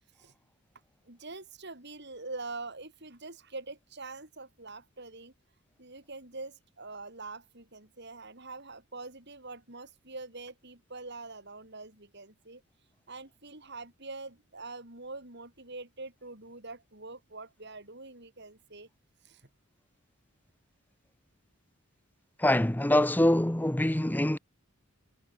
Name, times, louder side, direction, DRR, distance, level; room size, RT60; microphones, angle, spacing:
voice 1, 1.1-5.3 5.8-12.6 13.1-18.9 19.2-19.4, right 3 dB, 55° right, 7.6 m, -44 dB
voice 2, 22.4-24.4, left 1 dB, 10° left, 0.8 m, -24 dB
head